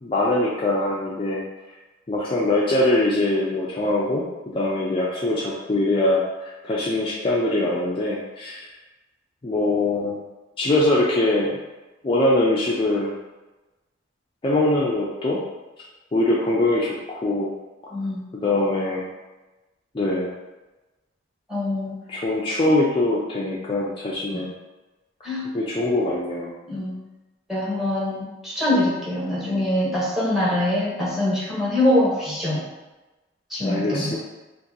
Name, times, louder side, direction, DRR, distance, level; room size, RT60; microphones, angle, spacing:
voice 1, 0.0-1.4 2.1-6.2 6.6-8.7 9.4-10.2 10.6-11.5 12.0-13.1 14.4-15.4 16.1-17.5 18.4-19.1 19.9-20.3 22.1-24.5 25.5-26.5 33.6-34.2, left 2 dB, 25° left, -6 dB, 0.4 m, -22 dB
voice 2, 17.9-18.2 21.5-21.9 24.3-24.4 25.2-25.5 26.7-26.9 27.5-32.6 33.5-34.1, left 1 dB, ahead, -7 dB, 0.9 m, -23 dB
2.7 x 2.6 x 3.8 m, 1.1 s
head